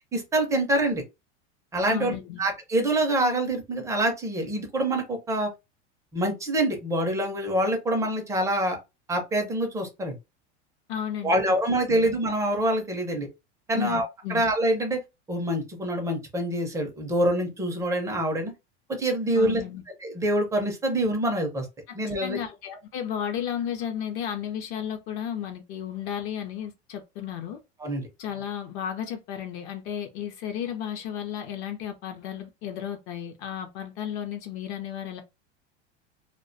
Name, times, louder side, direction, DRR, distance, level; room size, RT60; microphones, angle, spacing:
voice 1, 0.1-1.0 1.7-5.5 6.1-8.8 9.1-10.2 11.2-13.3 13.7-15.0 15.3-18.5 18.9-19.6 20.0-21.7 21.9-22.4 27.8-28.0, right 1 dB, 10° right, 0.4 m, -25 dB
voice 2, 1.9-2.4 10.9-11.4 11.9-12.1 13.7-14.4 19.3-19.8 21.9-27.6 28.2-35.2, left 9 dB, 45° left, 0.5 m, -33 dB
2.3 x 2.1 x 2.5 m
supercardioid pair, 140°, 35 cm